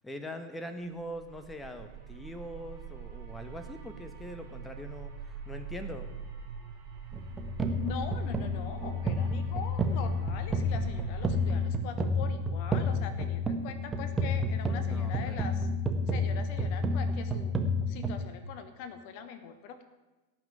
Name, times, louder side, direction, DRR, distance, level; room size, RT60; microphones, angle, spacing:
voice 1, 0.0-6.1 14.7-15.5, equal, 10° left, 8 dB, 1.3 m, -42 dB
sound 1, 1.0-11.7, right 6 dB, 45° right, 3.6 m, -44 dB
sound 2, 7.1-18.2, left 1 dB, 15° right, 1.4 m, -30 dB
voice 2, 7.8-15.7 16.1-17.6 17.9-19.8, left 7 dB, 45° left, 10 dB, 1.2 m, -42 dB
17.5 x 6.2 x 8.9 m, 1.2 s
figure-of-eight pair, 90°, 0 cm